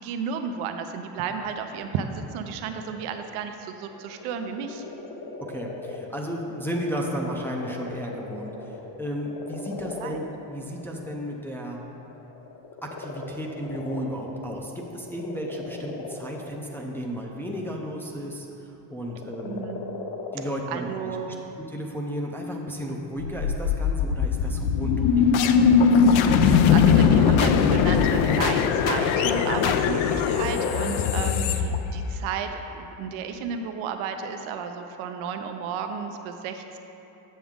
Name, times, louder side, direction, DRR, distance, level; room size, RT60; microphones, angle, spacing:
voice 1, 0.0-4.8 10.0-10.2 19.4-20.0 20.7-21.4 26.0-36.8, right 6 dB, 90° right, 6 dB, 0.6 m, -33 dB
sound 1, 2.3-3.2 3.7-17.9 19.0-20.6, left 3 dB, 45° left, 0.9 m, -39 dB
voice 2, 5.4-11.8 12.8-19.6 20.3-20.9 21.3-25.5, equal, 5° left, -1 dB, 0.4 m, -34 dB
sound 2, 23.2-32.3, left 6 dB, 85° left, 0.6 m, -20 dB
7.4 x 7.1 x 3.6 m, 3.0 s
cardioid pair, 135°, 47 cm